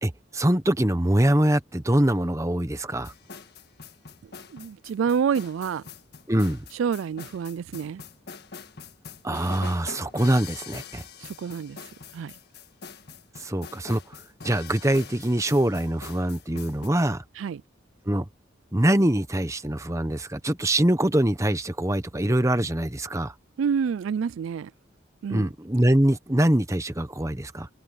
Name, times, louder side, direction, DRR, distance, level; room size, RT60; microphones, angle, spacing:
voice 1, 0.0-3.1 6.3-6.6 9.2-11.0 13.4-14.2 14.4-17.2 18.1-18.2 18.7-23.3 25.3-27.7, right 1 dB, 15° right, 1.1 m, -24 dB
sound 1, 3.0-16.9, left 5 dB, 55° left, 1.7 m, -44 dB
voice 2, 4.5-5.8 6.7-8.0 11.2-11.8 12.1-12.3 17.4-17.6 23.6-24.7 25.2-25.5, right 7 dB, 85° right, 0.3 m, -28 dB
head